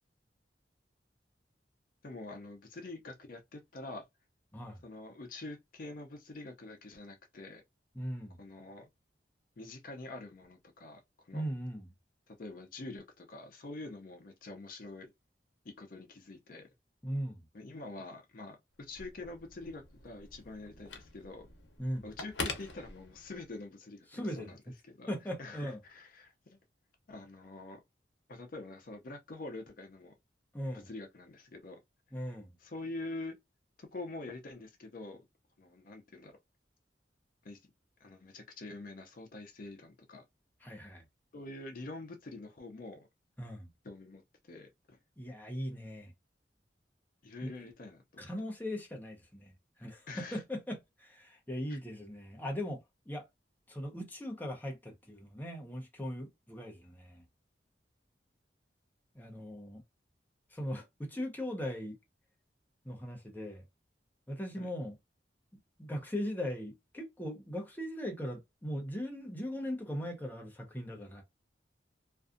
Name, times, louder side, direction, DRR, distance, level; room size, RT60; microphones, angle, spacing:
voice 1, 2.0-4.0 4.8-7.6 8.4-8.9 9.6-11.4 12.3-15.1 15.6-16.7 17.5-21.5 22.0-24.6 24.8-25.1 25.4-26.6 27.1-27.8 28.3-30.1 30.7-31.8 32.6-33.4 33.8-35.3 35.6-36.3 37.4-37.6 38.0-40.2 41.3-43.1 43.8-44.2 44.5-45.0 47.2-48.3 50.1-50.4 51.7-51.8 64.6-64.7, left 2 dB, 50° left, 0.5 m, -46 dB
voice 2, 8.0-8.4 11.3-11.9 17.0-17.5 21.8-22.0 24.1-24.5 25.1-25.8 30.5-30.8 32.1-32.6 40.6-41.0 43.4-43.7 45.2-46.1 47.4-47.5 48.2-49.5 49.8-53.2 53.7-57.2 59.2-59.8 60.5-62.0 62.8-63.6 64.3-65.0 65.8-71.2, equal, 10° left, 0.6 m, -39 dB
Telephone, 18.8-23.6, left 3 dB, 90° left, 0.7 m, -44 dB
2.5 x 2.3 x 2.5 m
head